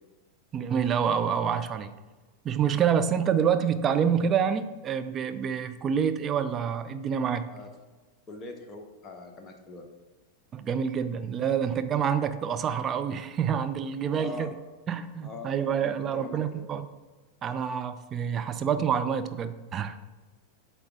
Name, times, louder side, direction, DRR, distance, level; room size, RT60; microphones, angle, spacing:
voice 1, 0.5-1.9 2.4-7.5 10.5-14.5 14.9-16.9 17.4-20.0, right 7 dB, 25° right, 10 dB, 0.4 m, -27 dB
voice 2, 8.3-9.9 14.1-14.5 15.2-16.7, left 3 dB, 20° left, 3 dB, 0.9 m, -43 dB
8.4 x 3.5 x 3.8 m, 1.3 s
figure-of-eight pair, 90°, 0 cm